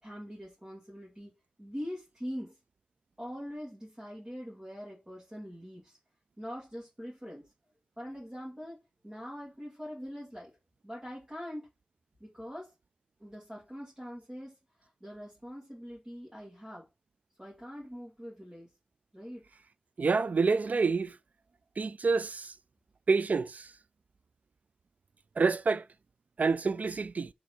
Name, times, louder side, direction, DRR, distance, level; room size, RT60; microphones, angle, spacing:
voice 1, 0.0-1.3 1.6-2.6 3.2-6.0 6.4-7.5 8.0-10.6 10.8-11.7 12.2-12.7 13.2-16.9 17.4-18.7 19.1-19.4, equal, 20° right, 2.1 m, -43 dB
voice 2, 20.0-21.1 21.8-22.5 23.1-23.7 25.4-25.8 26.4-27.3, right 4 dB, 70° right, 0.3 m, -27 dB
5.0 x 3.5 x 5.4 m
wide cardioid pair, 75°, 3 cm